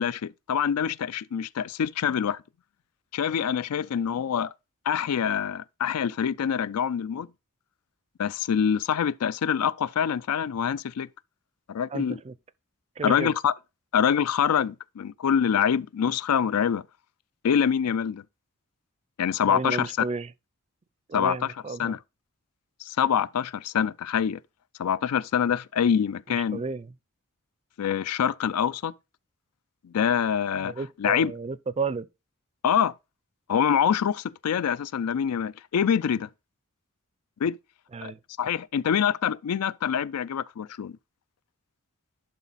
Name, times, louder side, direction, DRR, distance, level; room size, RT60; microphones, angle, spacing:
voice 1, 0.0-2.4 3.1-4.5 4.9-7.3 8.2-11.1 11.7-12.2 13.0-13.5 13.9-16.8 17.4-18.2 19.2-19.9 21.1-21.5 21.8-22.0 22.8-24.4 24.8-26.6 27.8-28.9 29.8-30.7 31.0-31.3 32.6-32.9 33.5-36.3 37.4-37.6 38.0-38.1 38.4-41.0, left 8 dB, 85° left, 0.4 m, -25 dB
voice 2, 11.9-12.3 13.0-13.3 19.4-20.3 21.1-22.0 26.5-26.9 30.6-32.1 37.9-38.2, right 4 dB, 30° right, 0.4 m, -32 dB
11.0 x 4.1 x 4.0 m
head